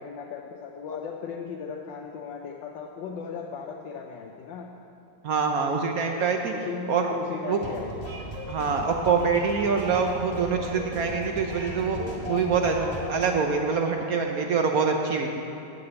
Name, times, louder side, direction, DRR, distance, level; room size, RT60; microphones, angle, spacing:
voice 1, 0.0-4.7 6.2-7.9, left 6 dB, 70° left, 1 dB, 1.3 m, -37 dB
voice 2, 5.2-6.5 6.9-7.2 7.5-7.6 8.5-12.0 12.3-15.4, right 5 dB, 70° right, 3 dB, 0.8 m, -25 dB
sound 1, 7.6-13.3, equal, 15° right, 1.6 m, -36 dB
9.7 x 7.0 x 8.1 m, 2.7 s
omnidirectional pair, 2.3 m